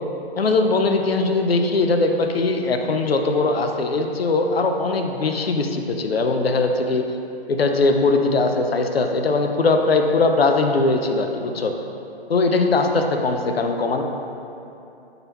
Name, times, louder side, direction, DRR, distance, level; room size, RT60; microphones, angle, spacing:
voice 1, 0.4-7.0 7.5-11.7 12.3-14.0, left 3 dB, 70° left, 4 dB, 0.6 m, -20 dB
5.4 x 4.0 x 4.4 m, 2.8 s
figure-of-eight pair, 140°, 31 cm